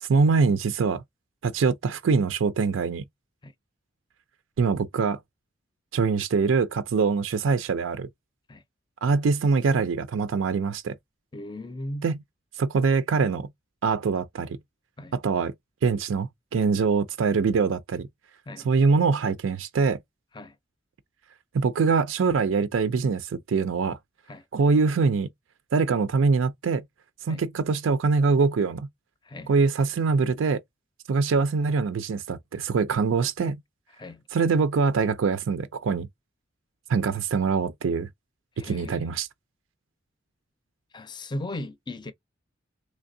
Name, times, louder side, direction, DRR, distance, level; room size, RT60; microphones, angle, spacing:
voice 1, 0.0-1.0 1.4-3.0 4.6-5.2 5.9-8.1 9.0-11.0 12.0-12.2 12.6-13.5 13.8-14.6 15.1-15.5 15.8-18.1 18.6-20.0 21.5-24.0 24.5-25.3 25.7-26.8 27.2-28.9 29.5-30.6 31.1-33.6 34.3-36.1 36.9-38.1 38.6-39.3, right 4 dB, 85° right, 0.4 m, -23 dB
voice 2, 11.3-12.1 15.0-15.2 18.5-18.7 20.3-20.5 24.3-24.4 27.3-27.4 29.2-29.5 34.0-34.2 38.6-39.0 40.9-42.1, left 1 dB, 20° left, 0.5 m, -37 dB
3.4 x 3.2 x 2.6 m
head